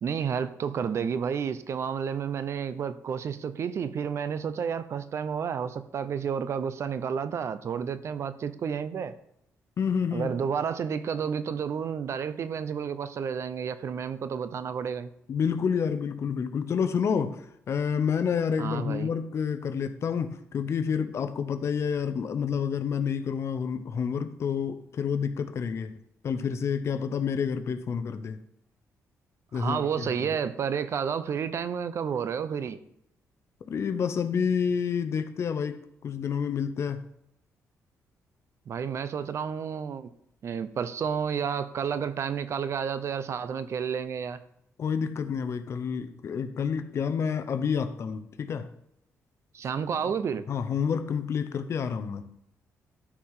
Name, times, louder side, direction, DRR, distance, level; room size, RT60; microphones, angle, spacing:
voice 1, 0.0-9.1 10.1-15.1 18.6-19.1 29.5-32.8 38.7-40.1 40.4-44.4 49.5-50.4, right 7 dB, 55° right, 13 dB, 0.7 m, -31 dB
voice 2, 9.8-10.3 15.3-25.9 26.2-28.4 29.5-30.1 33.7-37.0 44.8-48.7 50.0-50.1 50.5-52.2, left 6 dB, 55° left, 9 dB, 0.9 m, -29 dB
13.0 x 4.9 x 5.7 m, 0.75 s
cardioid pair, 110°, 6 cm